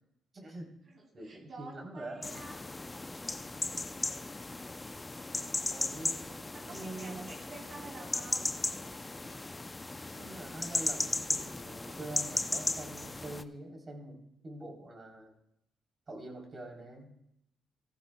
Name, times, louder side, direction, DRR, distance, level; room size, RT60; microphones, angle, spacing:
voice 1, 0.3-0.7 1.1-2.3 3.4-3.5 5.7-6.2 6.7-7.3 10.2-14.2 14.4-15.3 16.1-17.2, right 1 dB, 35° right, 1 dB, 3.5 m, -45 dB
voice 2, 0.9-2.6 6.3-8.5, right 2 dB, 55° right, -1 dB, 2.7 m, -49 dB
sound 1, 2.2-13.4, left 2 dB, 20° left, 0.6 m, -36 dB
15.0 x 14.5 x 2.3 m, 0.78 s
cardioid pair, 90°, 0 cm